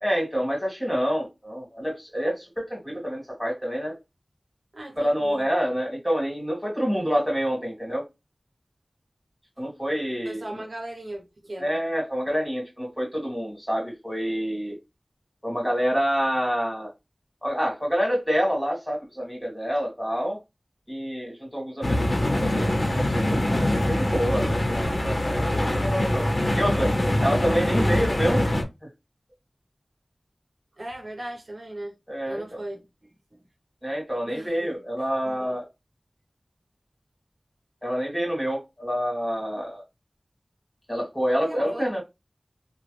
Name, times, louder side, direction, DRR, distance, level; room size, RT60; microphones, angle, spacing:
voice 1, 0.0-4.0 5.0-8.1 9.6-10.5 11.6-14.8 15.4-16.9 17.4-20.4 20.9-23.4 23.9-28.4 32.1-32.6 33.8-35.7 37.8-39.8 40.9-42.0, equal, 5° left, 2.1 m, -27 dB
voice 2, 4.7-5.8 10.2-11.7 28.2-28.5 30.8-32.0 32.3-32.9 33.3-33.4 34.2-34.8 35.2-35.6 41.4-41.9, right 1 dB, 75° right, 0.8 m, -38 dB
sound 1, 21.8-28.6, left 1 dB, 50° left, 0.9 m, -24 dB
3.0 x 2.3 x 3.2 m
wide cardioid pair, 50°, 0 cm